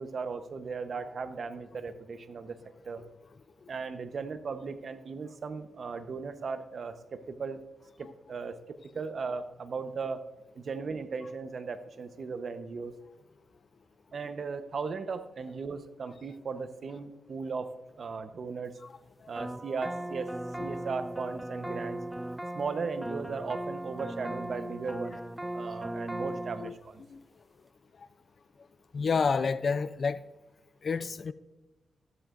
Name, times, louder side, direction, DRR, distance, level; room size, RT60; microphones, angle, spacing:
voice 1, 0.0-2.6 2.8-3.0 3.7-7.6 8.0-8.6 8.9-10.2 10.5-12.9 14.1-17.7 18.0-18.8 19.3-20.3 20.6-22.0 22.5-25.2 25.5-27.0, right 5 dB, 60° right, 0.8 m, -37 dB
sound 1, 19.4-26.7, right 1 dB, 10° right, 0.4 m, -38 dB
voice 2, 28.9-30.2 30.8-31.3, left 5 dB, 55° left, 0.4 m, -29 dB
14.5 x 12.5 x 2.5 m
cardioid pair, 70°, 0 cm